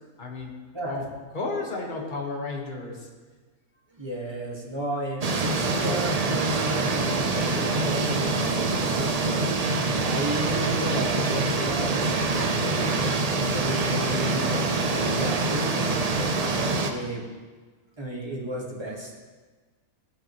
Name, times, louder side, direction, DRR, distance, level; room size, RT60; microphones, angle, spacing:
voice 1, 0.2-0.5 0.9-1.0 1.3-3.1, left 3 dB, 35° left, 0 dB, 1.4 m, -32 dB
voice 2, 0.7-1.0 3.9-9.2 10.0-15.9 16.8-17.3 18.0-19.1, right 1 dB, 20° right, -3 dB, 1.5 m, -34 dB
sound 1, 5.2-16.9, right 3 dB, 50° right, 0.4 m, -25 dB
12.5 x 7.4 x 3.0 m, 1.4 s
omnidirectional pair, 1.5 m